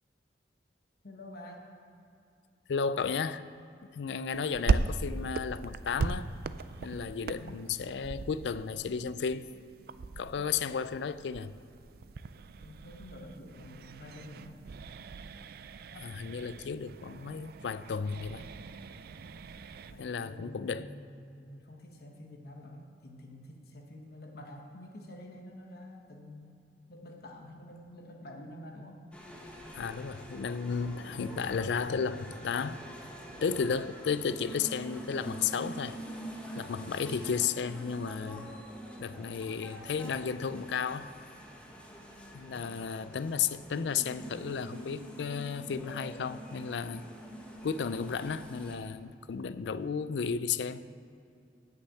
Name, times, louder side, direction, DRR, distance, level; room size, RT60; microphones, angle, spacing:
voice 1, 1.0-1.7 12.6-14.6 19.9-26.6 26.9-29.0 42.5-42.7, left 1 dB, 60° left, 1 dB, 1.1 m, -48 dB
voice 2, 2.7-3.4 3.9-6.3 6.8-9.5 10.2-11.6 15.9-18.5 20.0-20.9 29.7-32.8 33.4-36.0 36.6-38.5 39.0-41.1 42.3-47.0 47.6-50.9, left 6 dB, 75° left, 15 dB, 0.4 m, -33 dB
sound 1, 4.3-20.0, right 4 dB, 60° right, 0.4 m, -38 dB
sound 2, 29.1-48.8, equal, 5° left, 1.1 m, -46 dB
8.2 x 6.7 x 8.3 m, 2.6 s
head